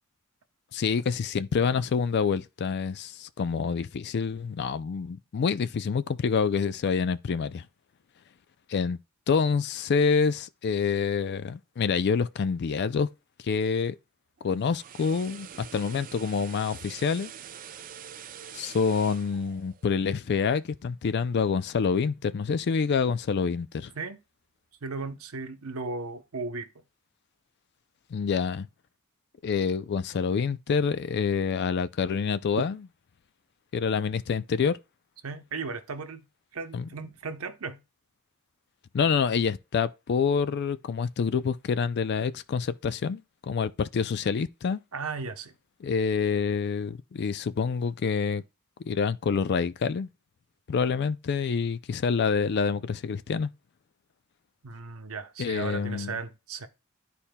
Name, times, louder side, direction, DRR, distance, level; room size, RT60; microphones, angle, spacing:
voice 1, 0.7-7.6 8.7-9.0 9.3-13.1 13.4-14.0 14.4-17.3 18.5-23.9 28.1-28.7 29.4-32.8 33.7-34.8 36.7-36.9 38.9-44.8 45.8-48.4 48.8-50.1 50.7-53.5 55.4-56.2, left 5 dB, 50° left, 0.4 m, -27 dB
sound 1, 14.4-20.6 20.9-21.1, right 8 dB, 40° right, 0.4 m, -46 dB
voice 2, 24.8-26.8 35.2-36.2 36.5-37.8 44.9-45.5 54.6-56.7, right 4 dB, 85° right, 0.8 m, -36 dB
12.0 x 4.2 x 2.2 m
head